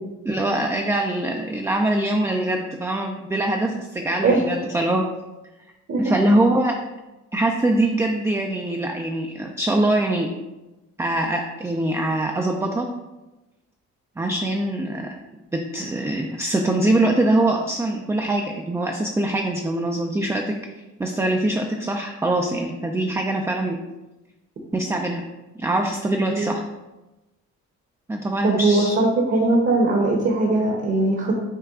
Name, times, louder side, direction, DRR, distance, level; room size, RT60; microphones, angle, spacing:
voice 1, 0.2-5.1 6.0-6.8 7.3-10.3 11.0-12.9 14.2-15.1 15.5-20.4 21.0-23.8 24.7-25.2 25.6-26.6 28.1-29.0, right 1 dB, 10° right, 2 dB, 0.3 m, -23 dB
voice 2, 28.4-31.4, right 2 dB, 45° right, -1 dB, 0.9 m, -20 dB
5.7 x 2.3 x 3.5 m, 1.0 s
cardioid pair, 90°, 30 cm